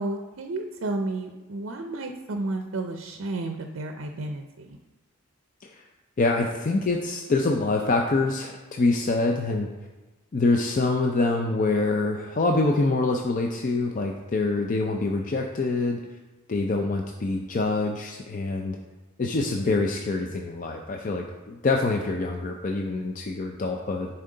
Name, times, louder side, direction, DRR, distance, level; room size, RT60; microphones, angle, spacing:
voice 1, 0.0-4.8, right 2 dB, 65° right, 5 dB, 0.5 m, -32 dB
voice 2, 6.2-9.7 10.3-16.0 16.5-18.8 19.2-24.1, left 3 dB, 35° left, 2 dB, 0.4 m, -25 dB
10.0 x 4.4 x 3.8 m, 1.2 s
head